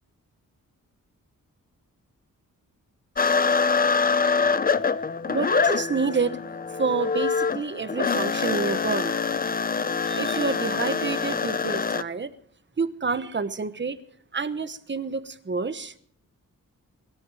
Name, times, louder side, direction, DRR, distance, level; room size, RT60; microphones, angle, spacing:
sound 1, 3.2-12.0, left 5 dB, 30° left, 0.6 m, -25 dB
voice 1, 5.3-6.4 6.7-9.2 10.0-12.4 12.8-14.0 14.3-15.9, right 5 dB, 35° right, 12 dB, 1.2 m, -28 dB
23.5 x 12.5 x 4.9 m, 0.63 s
wide cardioid pair, 140°, 32 cm